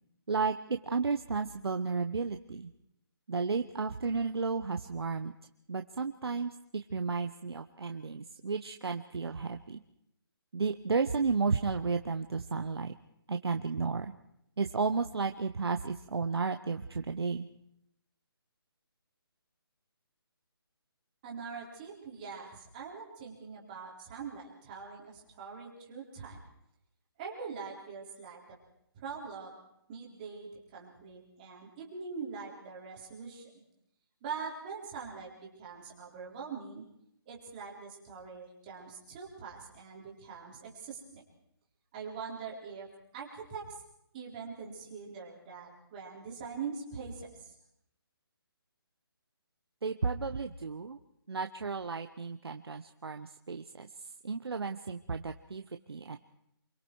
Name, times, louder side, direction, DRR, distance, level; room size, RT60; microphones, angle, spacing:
voice 1, 0.3-2.7 3.3-5.3 5.7-9.8 10.5-12.9 13.3-14.1 14.6-17.5 49.8-51.0 51.3-53.9 54.2-56.2, right 4 dB, 75° right, 6 dB, 1.1 m, -33 dB
voice 2, 21.2-26.4 27.2-28.6 28.9-29.6 29.9-33.6 34.2-36.8 37.3-41.2 41.9-42.9 43.1-43.8 44.1-47.5, right 5 dB, 20° right, -2 dB, 4.1 m, -43 dB
29.0 x 23.0 x 4.7 m, 0.79 s
hypercardioid pair, 170°, 13 cm